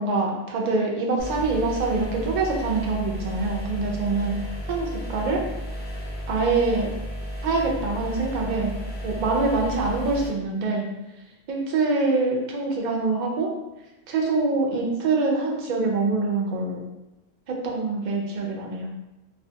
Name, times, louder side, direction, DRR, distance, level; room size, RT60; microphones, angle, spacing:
voice 1, 0.0-4.4 4.7-5.4 6.3-6.9 7.4-8.7 9.0-10.9 11.5-13.5 14.1-16.8 17.5-18.9, right 3 dB, 60° right, -1 dB, 0.4 m, -25 dB
sound 1, 1.2-10.3, equal, 15° left, 0.3 m, -33 dB
2.5 x 2.1 x 2.7 m, 0.97 s
omnidirectional pair, 1.3 m